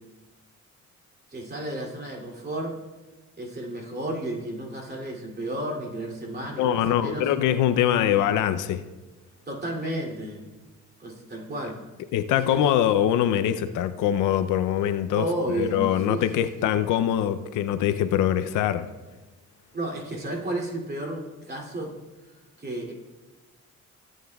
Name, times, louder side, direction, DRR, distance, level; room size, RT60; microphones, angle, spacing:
voice 1, 1.3-2.8 3.4-7.3 7.9-8.2 9.5-10.5 11.0-11.8 12.3-12.8 15.1-16.2 16.6-16.8 19.7-21.9 22.2-22.3 22.6-22.9, right 1 dB, 35° right, -1 dB, 2.7 m, -33 dB
voice 2, 6.6-8.8 12.1-18.9, left 10 dB, 85° left, 10 dB, 0.6 m, -23 dB
16.5 x 9.2 x 2.3 m, 1.2 s
cardioid pair, 90°, 30 cm